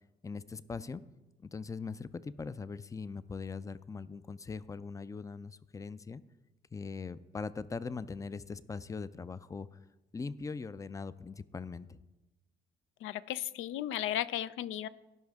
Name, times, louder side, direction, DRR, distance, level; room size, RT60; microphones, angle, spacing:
voice 1, 0.2-1.0 1.4-6.2 6.7-9.7 10.1-12.0, left 4 dB, 15° left, 16 dB, 0.3 m, -41 dB
voice 2, 13.0-14.9, left 12 dB, 85° left, 16 dB, 0.4 m, -35 dB
16.0 x 5.5 x 3.5 m, 1.1 s
cardioid pair, 90°, 20 cm